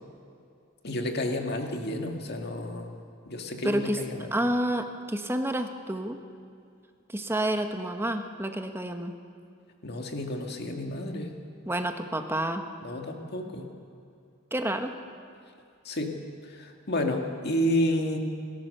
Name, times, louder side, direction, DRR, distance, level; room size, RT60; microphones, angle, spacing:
voice 1, 0.8-3.0 3.3-4.3 9.8-11.3 12.8-13.7 15.9-16.2 16.4-18.2, left 1 dB, 50° left, 3 dB, 2.0 m, -30 dB
voice 2, 3.6-4.0 4.3-6.2 7.1-9.1 11.6-12.7 14.5-14.9, right 1 dB, 10° right, 6 dB, 1.0 m, -29 dB
29.0 x 13.5 x 6.7 m, 2.4 s
head